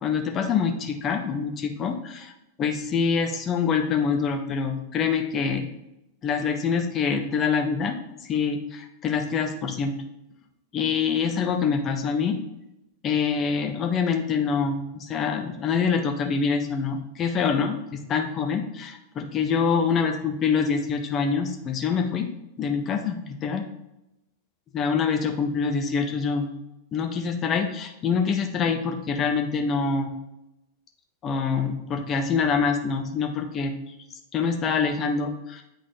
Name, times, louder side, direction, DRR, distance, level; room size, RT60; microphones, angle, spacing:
voice 1, 0.0-2.3 2.6-5.7 6.2-8.0 8.3-9.9 10.7-12.4 13.0-22.3 22.6-23.7 24.7-26.5 26.9-30.2 31.2-33.7 34.3-35.6, left 5 dB, 30° left, 5 dB, 0.7 m, -25 dB
8.3 x 4.0 x 3.1 m, 0.87 s
figure-of-eight pair, 90°, 0 cm